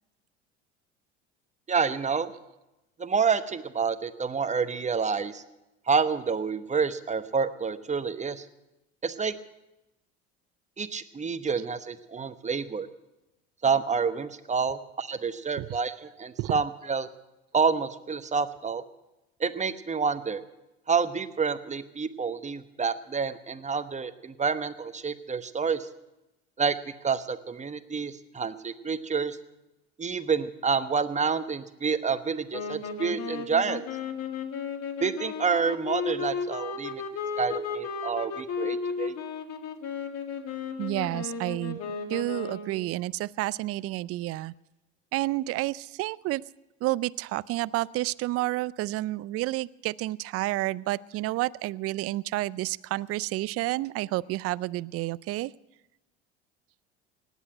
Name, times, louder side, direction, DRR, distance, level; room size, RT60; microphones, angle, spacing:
voice 1, 1.7-2.3 3.0-5.4 5.9-8.5 9.0-9.4 10.8-12.9 13.6-17.1 17.5-18.8 19.4-20.4 20.9-25.9 26.6-26.8 27.0-29.4 30.0-33.8 35.0-37.0 37.4-39.2, right 5 dB, 20° right, 11 dB, 1.1 m, -28 dB
sound 1, 32.5-42.9, left 5 dB, 50° left, 1.9 m, -34 dB
voice 2, 40.8-41.8 42.1-44.5 45.1-46.4 46.8-55.5, right 17 dB, 45° right, 20 dB, 0.5 m, -30 dB
18.5 x 8.3 x 9.0 m, 0.97 s
hypercardioid pair, 75°, 33 cm